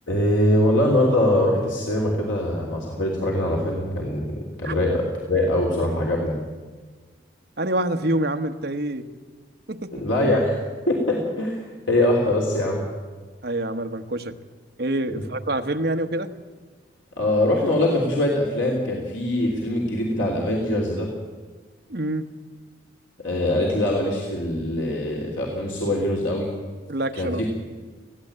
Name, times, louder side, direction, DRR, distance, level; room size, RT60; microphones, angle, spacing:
voice 1, 0.1-6.3 9.9-10.6 10.9-11.6 11.9-12.8 17.2-21.1 23.2-26.5 27.1-27.3, left 1 dB, 85° left, -2 dB, 3.3 m, -22 dB
voice 2, 7.6-9.0 9.7-10.0 13.4-14.3 14.8-16.3 21.9-22.2 26.9-27.4, right 1 dB, 55° right, 6 dB, 1.2 m, -26 dB
20.0 x 16.0 x 8.8 m, 1.4 s
head